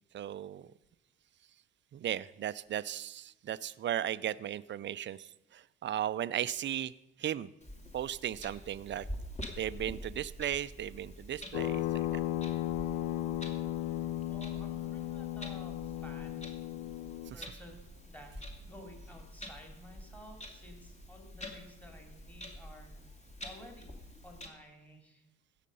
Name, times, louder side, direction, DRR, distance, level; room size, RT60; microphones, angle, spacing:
voice 1, 0.1-0.7 1.9-6.9 7.2-7.5 7.9-9.1 9.6-12.2 17.3-17.4, right 11 dB, 35° right, 17 dB, 0.5 m, -36 dB
Clock, 7.6-24.5, equal, 20° left, 2.4 m, -47 dB
sound 1, 11.5-17.3, left 13 dB, 80° left, 0.5 m, -35 dB
voice 2, 14.3-16.5 17.3-18.3 18.6-23.0 23.4-23.9 24.2-25.2, equal, 5° left, 2 dB, 2.6 m, -53 dB
16.0 x 6.6 x 5.4 m, 0.92 s
supercardioid pair, 90°, 31 cm